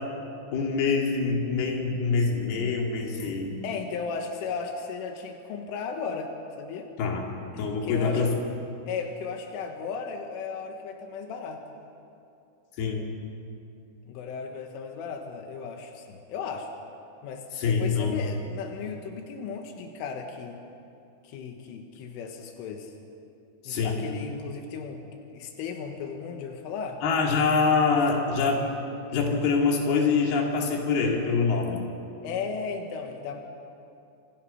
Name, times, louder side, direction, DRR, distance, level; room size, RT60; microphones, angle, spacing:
voice 1, 0.5-3.5 7.0-7.2 7.6-8.3 12.8-13.1 17.6-18.2 23.6-24.0 27.0-28.6 29.1-31.8, left 4 dB, 55° left, 0 dB, 4.6 m, -25 dB
voice 2, 3.6-6.3 6.6-6.9 7.5-8.2 8.9-11.6 14.1-16.7 17.2-20.6 21.2-22.9 23.7-25.0 25.3-27.0 32.2-33.4, left 5 dB, 90° left, 3 dB, 4.1 m, -35 dB
28.5 x 27.0 x 5.8 m, 2.7 s
omnidirectional pair, 5.5 m